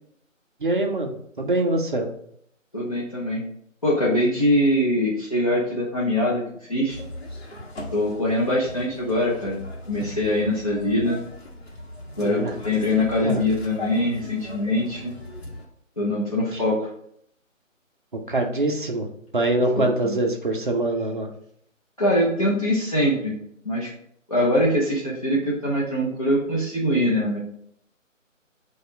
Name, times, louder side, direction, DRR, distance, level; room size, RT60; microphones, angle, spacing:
voice 1, 0.6-2.1 12.2-12.5 13.2-13.4 16.5-16.6 18.3-19.1 19.3-21.3, right 2 dB, 40° right, 3 dB, 0.6 m, -24 dB
voice 2, 2.7-3.4 3.8-6.4 6.7-7.0 7.9-9.6 9.9-11.2 12.2-15.1 16.0-16.9 19.8-20.2 22.0-23.4 23.6-23.9 24.3-27.4, left 1 dB, 25° left, -7 dB, 0.6 m, -23 dB
sound 1, 6.9-15.7, left 1 dB, 50° left, 1.0 m, -38 dB
4.9 x 2.3 x 4.7 m, 0.69 s
figure-of-eight pair, 150°, 40 cm